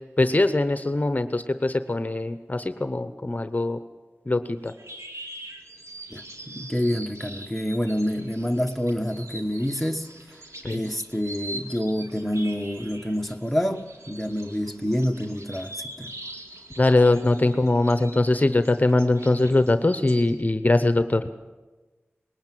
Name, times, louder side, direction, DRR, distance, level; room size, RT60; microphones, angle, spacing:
voice 1, 0.2-3.8 4.3-4.7 10.6-10.8 16.8-21.3, left 2 dB, 35° left, 10 dB, 0.8 m, -22 dB
sound 1, 4.6-20.3, right 1 dB, 85° right, 2.3 m, -43 dB
voice 2, 6.1-10.1 10.7-16.1, equal, 5° left, 4 dB, 1.2 m, -27 dB
20.0 x 18.5 x 7.6 m, 1.2 s
wide cardioid pair, 60°, 5 cm